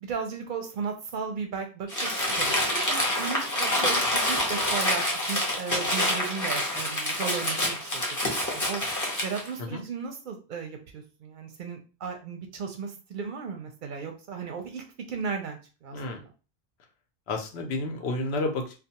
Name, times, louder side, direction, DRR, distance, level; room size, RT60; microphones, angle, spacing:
voice 1, 0.0-8.8 9.2-16.3, right 6 dB, 60° right, 4 dB, 0.6 m, -36 dB
Crumpling crinkling, 1.9-9.5, left 1 dB, 20° left, 0.6 m, -27 dB
voice 2, 17.3-18.8, left 2 dB, 85° left, 3 dB, 0.9 m, -31 dB
2.3 x 2.2 x 2.8 m, 0.33 s
omnidirectional pair, 1.0 m